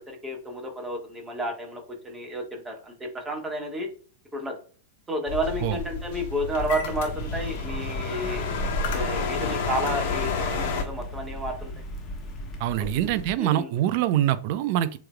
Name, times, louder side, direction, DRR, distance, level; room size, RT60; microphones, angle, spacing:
voice 1, 0.1-3.9 4.3-4.6 5.1-8.5 8.9-11.7 13.0-13.7, right 1 dB, 15° right, 1.5 m, -31 dB
sound 1, 5.3-10.8, left 4 dB, 50° left, 1.2 m, -30 dB
sound 2, 6.5-13.3, equal, 25° left, 1.2 m, -37 dB
voice 2, 12.6-15.0, right 12 dB, 50° right, 0.4 m, -24 dB
7.5 x 3.1 x 2.2 m
figure-of-eight pair, 95°, 0 cm